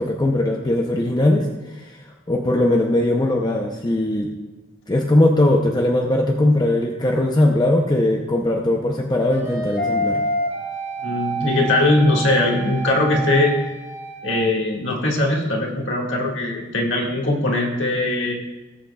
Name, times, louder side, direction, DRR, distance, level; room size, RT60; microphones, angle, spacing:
voice 1, 0.0-2.0 2.3-4.3 4.9-10.3, left 1 dB, 20° left, 1 dB, 0.6 m, -19 dB
sound 1, 9.3-14.4, right 1 dB, 40° left, 2.0 m, -27 dB
voice 2, 11.0-13.6 14.2-18.3, left 2 dB, 60° left, -1 dB, 1.9 m, -20 dB
18.5 x 7.6 x 2.3 m, 1.2 s
head